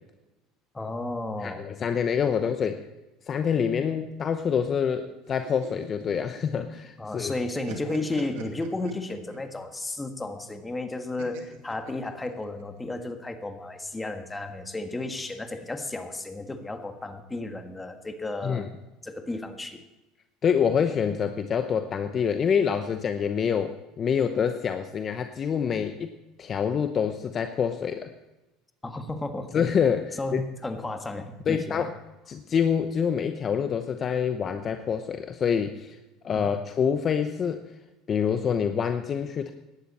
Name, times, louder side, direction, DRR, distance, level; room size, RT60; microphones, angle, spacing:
voice 1, 0.7-1.7 2.3-2.4 7.0-18.7 19.0-19.8 28.8-29.5 30.2-31.8 36.3-36.5, left 2 dB, 15° left, 6 dB, 1.6 m, -33 dB
voice 2, 1.4-2.8 3.3-7.3 18.4-18.6 20.4-28.1 29.5-30.4 31.5-31.9 32.3-36.0 36.2-37.6 38.1-39.5, left 7 dB, 35° left, 8 dB, 0.8 m, -26 dB
sound 1, 5.3-7.0 7.3-9.5 11.2-12.6, right 6 dB, 85° right, 2.3 m, -44 dB
17.5 x 11.5 x 4.2 m, 1.0 s
supercardioid pair, 110°, 0 cm